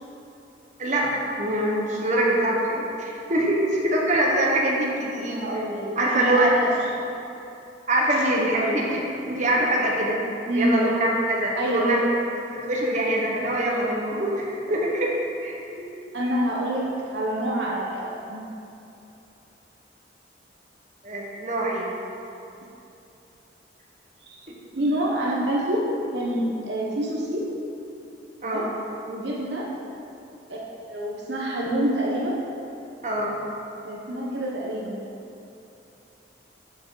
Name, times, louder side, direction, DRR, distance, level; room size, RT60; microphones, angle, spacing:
voice 1, 0.8-5.4 6.0-6.6 7.9-9.0 9.3-10.2 10.5-12.0 12.6-15.9 21.0-21.9 28.4-28.7 33.0-33.3, right 1 dB, 45° right, -3 dB, 1.2 m, -24 dB
voice 2, 5.3-6.7 8.5-8.8 10.5-10.7 11.6-11.9 16.1-18.4 24.2-24.4 24.7-25.8 26.1-27.5 28.4-28.7 29.0-29.7 30.5-30.6 30.9-32.4 33.8-35.0, right 1 dB, 70° right, -4 dB, 1.0 m, -27 dB
7.8 x 7.2 x 4.0 m, 2.8 s
head